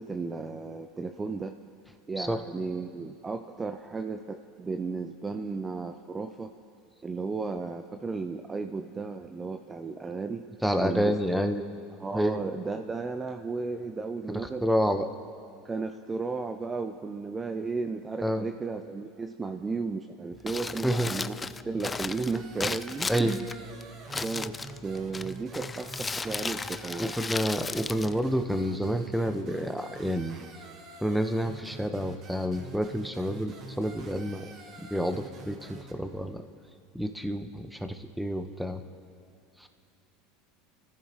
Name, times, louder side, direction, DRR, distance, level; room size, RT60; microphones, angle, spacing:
voice 1, 0.0-1.6 2.1-6.5 7.0-10.5 10.8-11.4 12.0-14.6 15.6-21.4 21.6-23.4 24.2-27.1, right 4 dB, 20° right, 6 dB, 0.7 m, -34 dB
voice 2, 10.6-11.6 12.1-12.4 14.6-15.0 18.2-18.5 20.8-21.1 23.1-23.4 27.0-30.4 31.0-34.5 34.9-36.4 36.9-38.8 39.6-39.7, equal, ahead, 7 dB, 1.3 m, -29 dB
Crumpling crinkling, 20.3-28.9, left 4 dB, 20° left, 0.4 m, -36 dB
sound 1, 22.3-35.9, right 3 dB, 45° right, 2.1 m, -47 dB
28.5 x 14.5 x 3.2 m, 2.6 s
hypercardioid pair, 85°, 0 cm